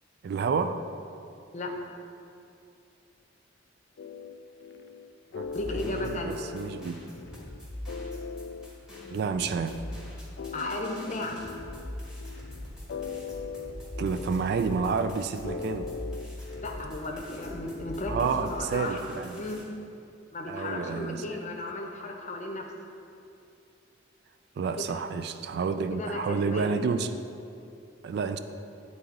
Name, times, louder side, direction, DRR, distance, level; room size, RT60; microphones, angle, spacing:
voice 1, 0.2-0.8 5.3-7.0 9.1-9.8 14.0-15.9 18.1-19.4 20.5-21.2 24.6-27.1 28.0-28.4, right 5 dB, 60° right, 10 dB, 0.3 m, -29 dB
sound 1, 4.0-17.7, left 5 dB, 60° left, 0.3 m, -41 dB
sound 2, 5.4-19.6, left 1 dB, 5° right, 1.3 m, -42 dB
voice 2, 5.5-6.4 10.5-11.4 16.6-19.6 20.3-22.7 24.8-25.1 25.9-26.7, left 2 dB, 40° left, 2 dB, 0.7 m, -35 dB
9.3 x 3.8 x 3.7 m, 2.5 s
head